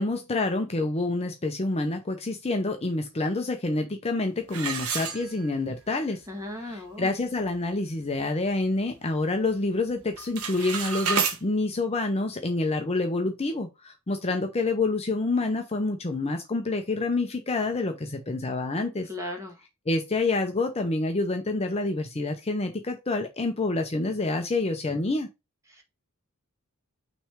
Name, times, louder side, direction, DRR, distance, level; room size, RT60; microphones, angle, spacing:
voice 1, 0.0-6.2 6.6-19.1 19.9-25.3, left 2 dB, 30° left, 0.7 m, -27 dB
sound 1, 4.5-5.8 6.2-6.3 6.9-7.0 7.4-7.7 8.1-9.2 9.5-9.8 10.1-11.4, right 6 dB, 80° right, 1.3 m, -30 dB
voice 2, 6.3-7.1 19.1-19.6 25.7-25.8, left 1 dB, 15° right, 1.7 m, -36 dB
6.0 x 3.3 x 4.9 m
head